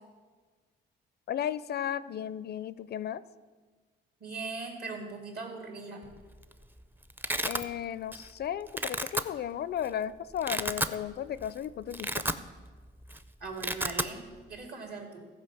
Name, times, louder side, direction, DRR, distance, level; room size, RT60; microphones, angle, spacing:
voice 1, 1.3-3.2 7.4-12.2, left 9 dB, 55° left, 17 dB, 0.4 m, -35 dB
voice 2, 4.2-6.1 13.4-15.3, right 3 dB, 55° right, 2 dB, 2.7 m, -40 dB
Domestic sounds home sounds, 6.2-6.5 6.8-7.6 8.1-8.4 8.7-9.2 9.8-9.9 10.3-11.0 11.4-11.5 11.8-12.8 13.0-13.2 13.4-14.1, right 1 dB, 10° right, 0.5 m, -32 dB
14.5 x 5.0 x 6.9 m, 1.4 s
cardioid pair, 90°, 20 cm